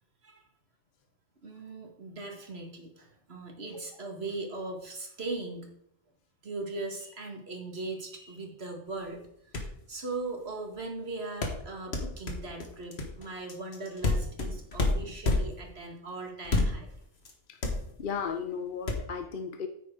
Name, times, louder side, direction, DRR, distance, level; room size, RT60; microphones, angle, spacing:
voice 1, 1.4-5.7 6.4-16.9, right 3 dB, 80° right, 2 dB, 2.1 m, -39 dB
sound 1, 9.2-9.3 9.5-9.8 11.4-15.7 16.4-16.9 17.2-17.3 17.6-18.2 18.9-19.0, left 2 dB, 90° left, 1.8 m, -29 dB
voice 2, 18.0-19.7, left 6 dB, 60° left, 7 dB, 0.8 m, -35 dB
9.4 x 9.1 x 3.8 m, 0.71 s
omnidirectional pair, 1.0 m